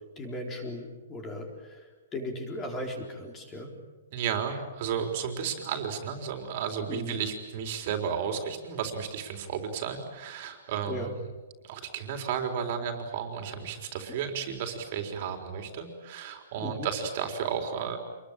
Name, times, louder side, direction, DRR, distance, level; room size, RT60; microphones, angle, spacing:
voice 1, 0.2-3.7 6.8-7.2 10.9-11.1 16.6-16.9, left 1 dB, 15° left, 3 dB, 4.0 m, -37 dB
voice 2, 4.1-11.2 11.6-18.0, right 7 dB, 40° right, 5 dB, 4.0 m, -33 dB
27.0 x 22.0 x 8.9 m, 1.2 s
hypercardioid pair, 170°, 0 cm